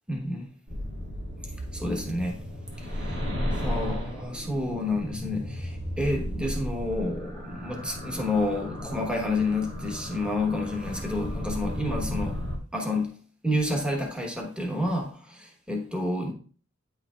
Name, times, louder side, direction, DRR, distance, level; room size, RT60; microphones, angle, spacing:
voice 1, 0.1-0.5 1.7-2.4 2.8-3.2 3.5-12.4 12.7-13.2 13.4-16.3, left 2 dB, 5° right, 1.1 m, -29 dB
sound 1, 0.7-12.6, equal, 60° right, 1.8 m, -34 dB
9.3 x 5.8 x 2.4 m
head